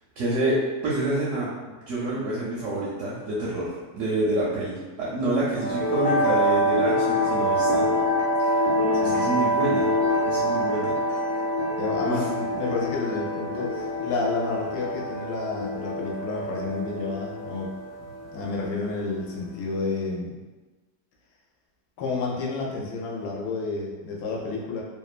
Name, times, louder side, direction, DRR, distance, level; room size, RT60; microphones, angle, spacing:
voice 1, 0.2-0.6 0.8-1.5 1.8-7.9 9.0-9.9 10.2-11.0 12.1-12.3, right 1 dB, 65° right, -6 dB, 0.8 m, -27 dB
sound 1, 5.6-19.7, equal, 55° left, 0.7 m, -26 dB
voice 2, 11.8-17.7 18.0-20.3 22.0-24.8, left 3 dB, 80° left, -3 dB, 1.1 m, -30 dB
2.9 x 2.1 x 2.3 m, 1.2 s
omnidirectional pair, 1.7 m